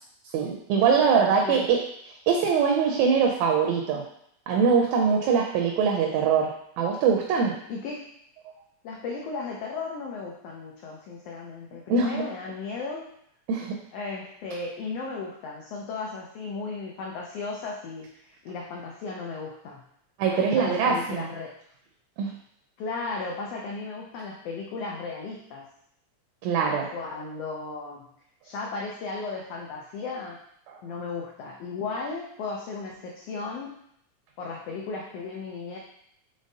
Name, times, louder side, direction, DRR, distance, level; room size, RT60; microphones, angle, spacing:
voice 1, 0.3-1.8 2.3-4.1 4.5-7.6 11.9-12.2 13.5-13.8 20.2-21.3 22.2-22.3 26.4-26.9, right 6 dB, 80° right, 1 dB, 1.7 m, -23 dB
voice 2, 7.7-8.1 8.8-13.1 13.9-19.8 20.3-21.5 22.8-25.7 26.9-28.1 28.4-30.4 30.8-33.8 34.4-35.8, left 4 dB, 85° left, -2 dB, 1.4 m, -35 dB
5.2 x 3.4 x 2.7 m, 0.71 s
omnidirectional pair, 3.4 m